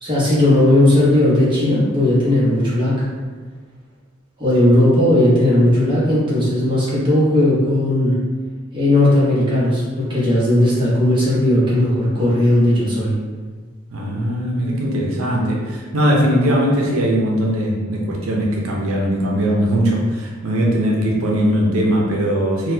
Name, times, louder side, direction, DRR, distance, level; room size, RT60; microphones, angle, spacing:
voice 1, 0.0-3.0 4.4-8.1 8.7-13.1, left 1 dB, 25° right, -8 dB, 1.0 m, -16 dB
voice 2, 13.9-22.7, equal, 85° right, -2 dB, 0.7 m, -19 dB
3.9 x 2.3 x 2.7 m, 1.4 s
head